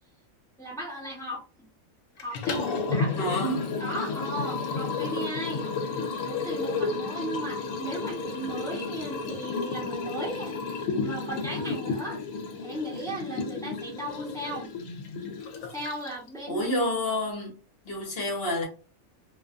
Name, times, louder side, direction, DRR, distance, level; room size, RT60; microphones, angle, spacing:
voice 1, 0.6-1.7 2.2-2.6 2.9-3.4 3.8-5.7 6.3-10.6 10.9-12.2 12.6-14.7 15.7-16.7, right 1 dB, 5° left, 0.8 m, -36 dB
Liquid, 2.2-16.3, left 4 dB, 90° left, 1.0 m, -32 dB
voice 2, 3.1-3.6 16.5-17.5 17.8-18.6, left 1 dB, 55° left, 1.1 m, -28 dB
2.5 x 2.3 x 2.4 m
omnidirectional pair, 1.3 m